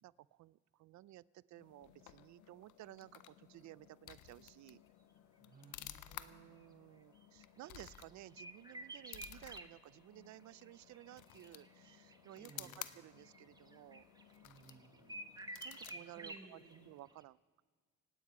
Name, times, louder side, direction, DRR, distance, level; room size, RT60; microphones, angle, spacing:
voice 1, 0.0-4.8 6.1-14.1 14.9-15.4 15.6-17.4, right 16 dB, 70° right, 21 dB, 0.4 m, -56 dB
sound 1, 1.5-17.1, left 13 dB, 85° left, 0.7 m, -55 dB
voice 2, 5.4-6.8 12.4-12.8 14.4-15.2 15.9-16.8, right 4 dB, 30° right, -1 dB, 5.1 m, -61 dB
sound 2, 7.2-9.6 10.4-16.8 17.1-17.2, right 2 dB, 15° right, 1.0 m, -52 dB
25.5 x 9.2 x 4.8 m, 1.5 s
cardioid pair, 90°, 30 cm